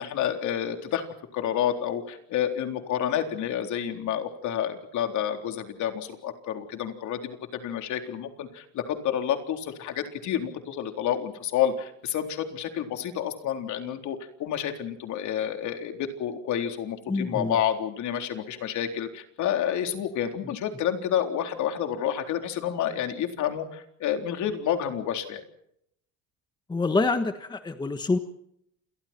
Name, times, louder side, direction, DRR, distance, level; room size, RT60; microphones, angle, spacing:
voice 1, 0.0-25.4, left 9 dB, 55° left, 5 dB, 3.9 m, -29 dB
voice 2, 17.1-17.5 26.7-28.2, left 3 dB, 10° left, 8 dB, 1.3 m, -26 dB
30.0 x 28.0 x 4.5 m, 0.74 s
cardioid pair, 160°, 34 cm